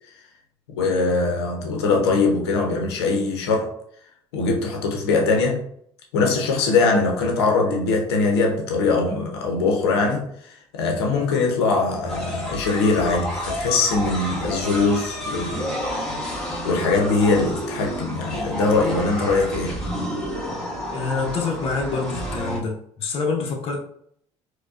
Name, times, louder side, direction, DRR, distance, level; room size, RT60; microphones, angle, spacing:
voice 1, 0.7-3.7 4.3-5.6 6.1-15.8 16.6-19.8, left 3 dB, 90° left, 0.7 m, -22 dB
sound 1, 12.1-22.6, equal, 5° left, 1.5 m, -30 dB
voice 2, 20.9-23.8, left 4 dB, 45° left, 0.7 m, -26 dB
4.5 x 2.2 x 2.4 m
hypercardioid pair, 65°, 13 cm